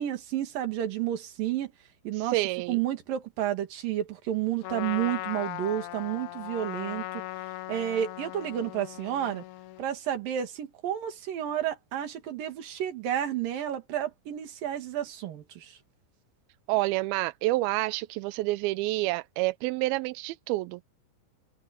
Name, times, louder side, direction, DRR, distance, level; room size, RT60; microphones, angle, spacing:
voice 1, 0.0-1.7 2.1-2.4 2.7-7.1 7.7-9.4 9.8-15.8, right 11 dB, 70° right, 3.6 m, -31 dB
voice 2, 2.2-2.8 16.7-20.8, right 20 dB, 90° right, 2.5 m, -28 dB
Trumpet, 4.6-9.9, left 17 dB, 85° left, 1.7 m, -38 dB
omnidirectional pair, 4.2 m